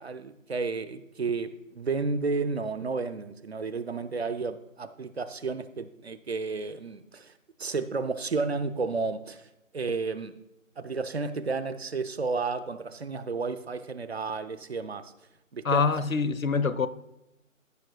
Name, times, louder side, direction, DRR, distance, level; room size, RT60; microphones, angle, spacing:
voice 1, 0.0-7.3 7.6-9.5 9.7-10.4 10.8-15.1 15.5-15.8, right 4 dB, 50° right, 0.7 m, -32 dB
voice 2, 15.6-16.9, left 5 dB, 85° left, 0.8 m, -25 dB
15.5 x 7.2 x 2.3 m
figure-of-eight pair, 150°, 40 cm